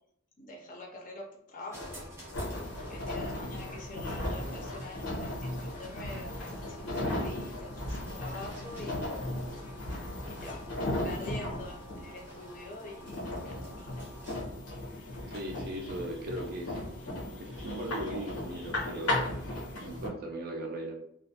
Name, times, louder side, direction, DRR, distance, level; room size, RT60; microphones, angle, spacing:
voice 1, 0.4-1.9 2.2-2.4 2.9-9.1 10.2-14.0, left 2 dB, 40° left, -1 dB, 0.5 m, -45 dB
sound 1, 1.7-14.6, equal, 10° right, 0.6 m, -49 dB
sound 2, 2.3-20.1, left 1 dB, 90° left, 0.7 m, -36 dB
voice 2, 15.3-16.8 17.4-19.3 19.8-20.9, right 1 dB, 45° right, 2 dB, 0.4 m, -38 dB
2.3 x 2.1 x 2.7 m, 0.71 s
head